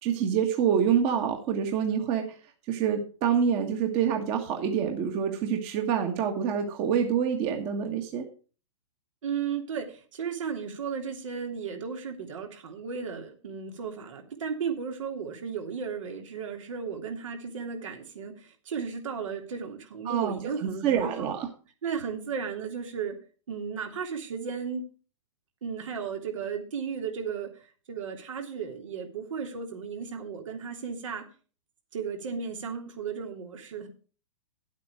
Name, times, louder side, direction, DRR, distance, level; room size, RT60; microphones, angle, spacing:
voice 1, 0.0-2.3 2.7-8.3 20.0-20.4 20.8-21.5, right 8 dB, 35° right, 4 dB, 1.7 m, -26 dB
voice 2, 9.2-21.4 21.8-23.2 23.5-24.8 25.6-27.5 27.9-31.2 31.9-33.9, right 6 dB, 75° right, 3 dB, 3.1 m, -35 dB
10.5 x 8.4 x 5.0 m, 0.37 s
hypercardioid pair, 135°, 16 cm